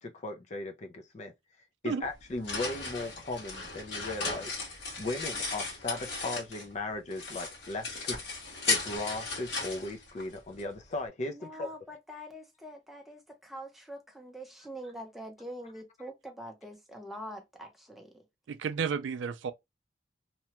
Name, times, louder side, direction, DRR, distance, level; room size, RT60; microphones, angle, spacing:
voice 1, 0.0-1.3 1.8-8.2 8.7-11.7, left 2 dB, 40° left, 0.4 m, -37 dB
sound 1, 2.0-6.8 7.1-10.6, left 3 dB, 65° left, 1.4 m, -36 dB
voice 2, 11.2-18.2, equal, ahead, 0.7 m, -44 dB
voice 3, 18.5-19.5, right 6 dB, 80° right, 0.4 m, -32 dB
2.9 x 2.2 x 2.9 m
head